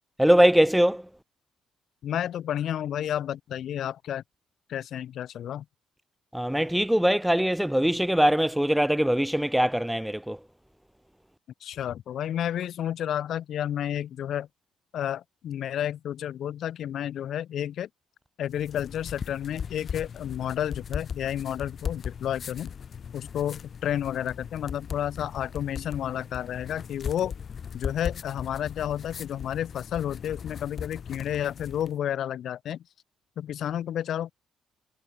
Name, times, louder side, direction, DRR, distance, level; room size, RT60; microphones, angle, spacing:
voice 1, 0.2-1.1 6.3-10.4, equal, 5° right, 0.3 m, -22 dB
voice 2, 2.0-4.2 4.7-5.7 11.6-14.5 14.9-17.9 18.4-22.7 23.1-27.3 27.7-32.8 33.4-34.3, left 10 dB, 70° left, 2.1 m, -31 dB
sound 1, 18.5-32.0, left 7 dB, 50° left, 2.4 m, -38 dB
cardioid pair, 90°, 0 cm